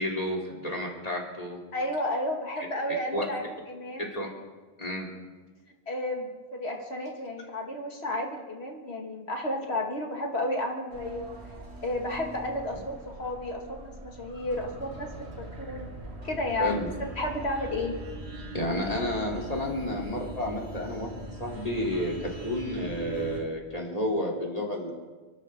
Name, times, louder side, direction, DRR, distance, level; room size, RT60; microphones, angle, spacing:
voice 1, 0.0-1.6 3.1-3.3 4.0-4.3 4.8-5.1 16.6-16.9 18.5-24.9, left 1 dB, 35° left, -1 dB, 3.4 m, -31 dB
voice 2, 1.7-4.1 5.9-11.3 11.8-15.9 16.2-18.0, left 1 dB, 75° left, 1 dB, 2.3 m, -32 dB
sound 1, 10.9-23.4, right 1 dB, 75° right, 2.4 m, -41 dB
29.5 x 13.0 x 3.7 m, 1.3 s
omnidirectional pair, 1.1 m